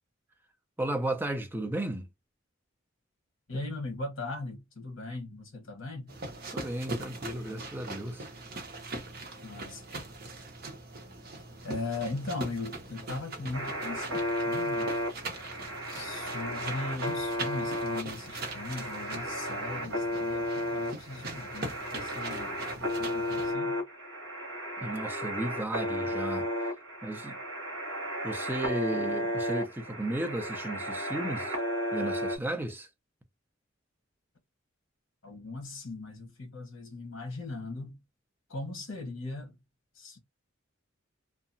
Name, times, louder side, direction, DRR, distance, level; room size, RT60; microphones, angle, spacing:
voice 1, 0.8-2.1 6.5-8.3 24.8-26.5 27.0-27.4 28.2-31.6 31.9-32.9, right 1 dB, 10° right, 0.5 m, -34 dB
voice 2, 3.5-6.1 9.4-9.8 11.6-15.0 15.9-23.8 35.2-38.0 38.5-39.6 39.9-40.2, left 2 dB, 65° left, 1.0 m, -39 dB
sound 1, 6.1-23.5, right 2 dB, 50° right, 0.8 m, -41 dB
sound 2, 13.5-32.4, equal, 80° right, 0.9 m, -34 dB
2.8 x 2.2 x 2.5 m
head